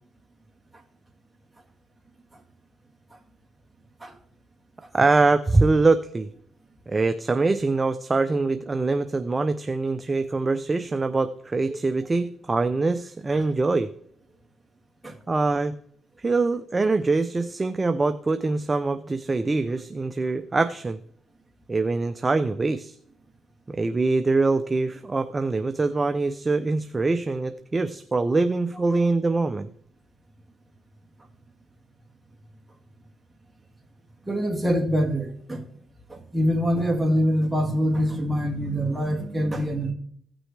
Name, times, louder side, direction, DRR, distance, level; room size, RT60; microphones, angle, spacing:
voice 1, 4.9-6.3 6.9-13.9 15.3-15.8 16.2-21.0 21.7-23.0 23.7-29.7, right 3 dB, 25° right, 0.5 m, -23 dB
voice 2, 34.3-35.6 36.1-39.9, equal, 10° right, 2.0 m, -24 dB
16.0 x 6.1 x 3.3 m
cardioid pair, 90°, 0 cm